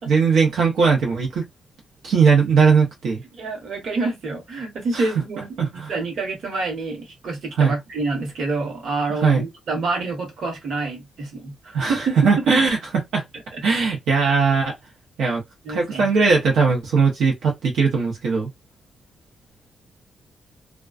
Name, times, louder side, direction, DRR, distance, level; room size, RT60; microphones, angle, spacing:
voice 1, 0.1-1.4 2.0-3.2 4.9-5.0 5.6-5.9 7.6-7.7 9.2-9.4 11.7-12.8 13.1-13.2 13.6-14.7 15.2-15.4 15.7-18.5, right 5 dB, 90° right, 0.7 m, -19 dB
voice 2, 3.4-12.1 13.5-13.6 15.6-16.1, right 3 dB, 55° right, 1.0 m, -27 dB
2.3 x 2.2 x 2.4 m
wide cardioid pair, 170°, 0 cm